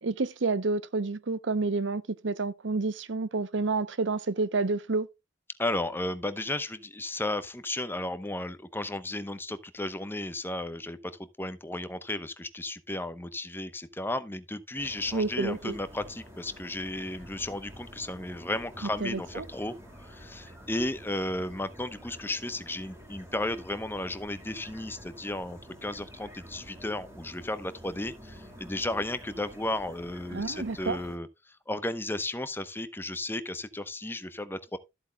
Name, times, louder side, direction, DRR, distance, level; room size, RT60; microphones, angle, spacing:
voice 1, 0.0-5.1 15.1-15.7 19.0-19.5 30.3-31.0, right 3 dB, 65° right, 0.7 m, -29 dB
voice 2, 5.6-11.0 11.4-31.3 31.7-34.8, left 1 dB, 10° left, 0.8 m, -34 dB
sound 1, 14.7-31.2, equal, 15° right, 4.1 m, -49 dB
13.5 x 8.0 x 2.2 m
head